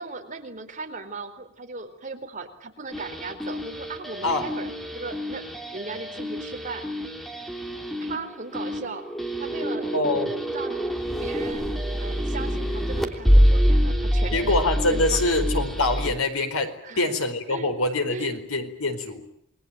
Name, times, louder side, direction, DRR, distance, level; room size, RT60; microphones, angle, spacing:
voice 1, 0.0-4.7 4.9-5.4 5.7-6.8 8.0-9.1 9.4-9.9 10.5-10.8 11.2-11.6 12.0-15.2 16.8-17.0 17.5-17.7 18.1-18.4, right 3 dB, 35° right, 4 dB, 4.2 m, -37 dB
sound 1, 2.9-16.1, equal, ahead, 3.1 m, -26 dB
voice 2, 9.9-10.3 14.3-19.2, left 2 dB, 90° left, 7 dB, 4.6 m, -25 dB
28.5 x 21.5 x 9.2 m, 0.72 s
head